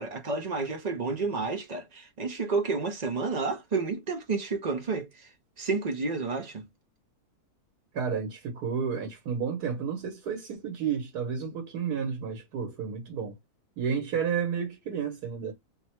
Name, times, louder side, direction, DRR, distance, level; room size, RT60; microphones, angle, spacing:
voice 1, 0.0-5.3 5.6-6.7, right 4 dB, 45° right, 0.5 m, -30 dB
voice 2, 7.9-13.3 13.8-15.5, right 6 dB, 90° right, 1.5 m, -31 dB
3.5 x 2.1 x 4.3 m
omnidirectional pair, 1.6 m